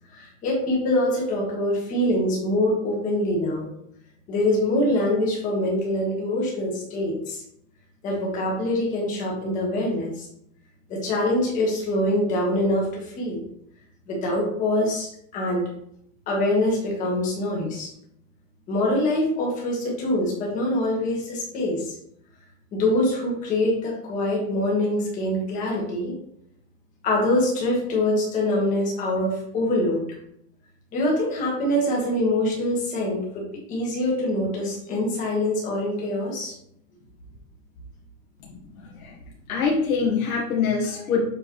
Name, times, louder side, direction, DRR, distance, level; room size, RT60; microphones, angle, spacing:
voice 1, 0.1-3.7 4.3-7.4 8.0-10.3 10.9-13.4 14.1-15.6 16.3-17.9 18.7-21.9 22.7-26.1 27.0-30.0 30.9-33.4 33.7-36.5, left 1 dB, 20° left, -3 dB, 1.6 m, -24 dB
voice 2, 39.5-41.2, left 5 dB, 90° left, -3 dB, 1.8 m, -24 dB
7.6 x 4.2 x 3.2 m, 0.72 s
supercardioid pair, 180°, 41 cm